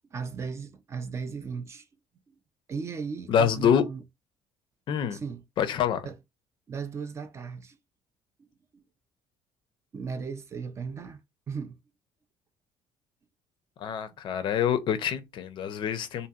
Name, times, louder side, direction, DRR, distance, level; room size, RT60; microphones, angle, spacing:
voice 1, 0.1-1.8 2.7-4.0 5.1-5.4 6.0-6.1 6.7-7.8 8.4-8.5 8.7-8.8 9.9-11.2 11.5-11.8, right 5 dB, 25° right, 0.4 m, -36 dB
voice 2, 3.3-3.8 4.9-5.2 5.6-6.1 13.8-16.3, left 8 dB, 50° left, 0.5 m, -26 dB
2.7 x 2.7 x 2.3 m
cardioid pair, 155°, 11 cm